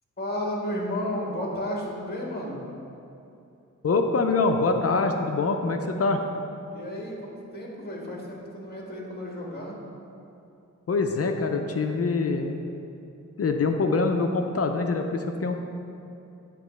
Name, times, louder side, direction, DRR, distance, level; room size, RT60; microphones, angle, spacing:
voice 1, 0.2-2.6 6.7-9.8, left 1 dB, 30° left, -2 dB, 1.4 m, -32 dB
voice 2, 3.8-6.2 10.9-12.6 13.4-15.6, left 3 dB, 50° left, 5 dB, 0.5 m, -24 dB
8.9 x 3.0 x 6.3 m, 2.7 s
wide cardioid pair, 120°, 31 cm